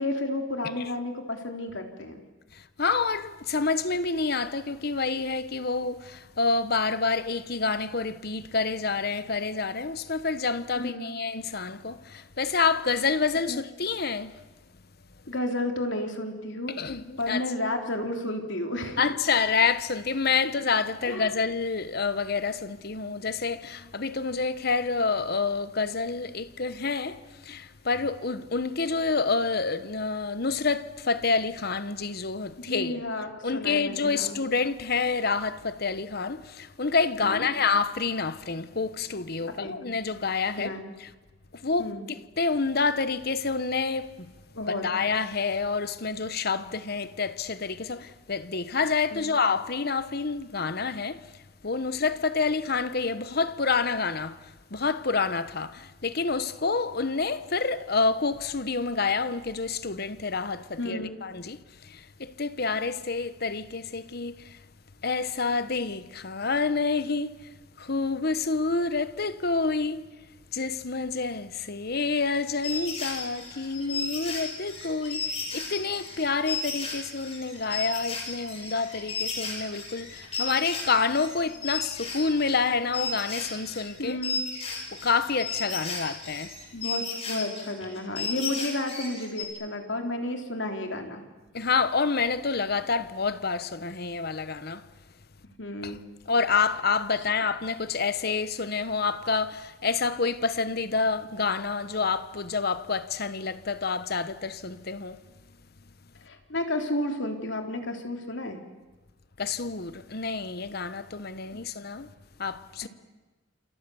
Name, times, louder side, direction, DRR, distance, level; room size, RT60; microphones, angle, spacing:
voice 1, 0.0-2.2 10.8-11.2 13.5-13.6 15.3-16.8 17.2-19.0 21.0-21.3 32.6-34.3 37.2-37.5 39.6-39.8 40.6-40.8 41.8-42.0 44.5-44.8 49.1-49.3 60.8-61.1 84.0-84.4 86.7-91.2 95.6-96.0 97.2-97.3 106.2-108.6 111.5-111.6, left 1 dB, 70° left, 3.5 m, -32 dB
voice 2, 2.5-14.4 16.8-17.5 19.0-33.0 33.4-40.7 41.0-41.1 41.5-44.3 44.7-51.2 51.6-64.6 65.0-67.5 67.8-70.0 70.5-84.2 84.9-86.5 91.5-94.9 95.8-96.0 96.3-105.2 109.4-112.1 112.4-112.9, left 4 dB, 55° left, 1.1 m, -28 dB
sound 1, 72.4-82.7 82.9-89.4, left 4 dB, 30° left, 6.3 m, -34 dB
28.0 x 28.0 x 7.1 m
head